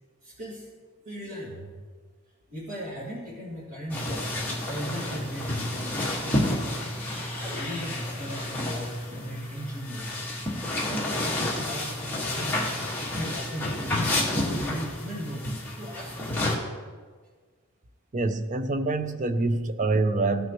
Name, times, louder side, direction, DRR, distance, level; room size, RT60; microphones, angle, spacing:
voice 1, 0.2-0.7 1.0-1.7 2.5-4.4 4.6-6.5 7.4-10.2 10.8-12.7 13.1-14.1 14.4-15.5 15.7-16.5, equal, 80° right, 2.2 m, -37 dB
sound 1, 3.9-16.5, left 1 dB, 10° left, 1.5 m, -30 dB
voice 2, 18.1-20.5, right 2 dB, 35° right, 0.5 m, -26 dB
15.5 x 6.2 x 2.9 m
head